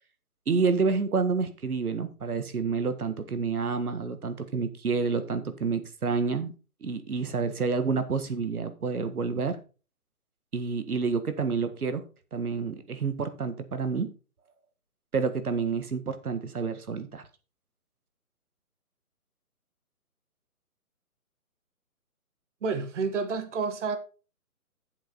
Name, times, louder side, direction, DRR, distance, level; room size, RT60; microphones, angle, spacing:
voice 1, 0.5-6.5 6.8-9.6 10.5-12.0 12.3-14.1 15.1-17.2, right 5 dB, 75° right, 1.7 m, -29 dB
voice 2, 22.6-24.0, right 4 dB, 50° right, 1.5 m, -29 dB
7.9 x 7.7 x 4.2 m
figure-of-eight pair, 145°, 44 cm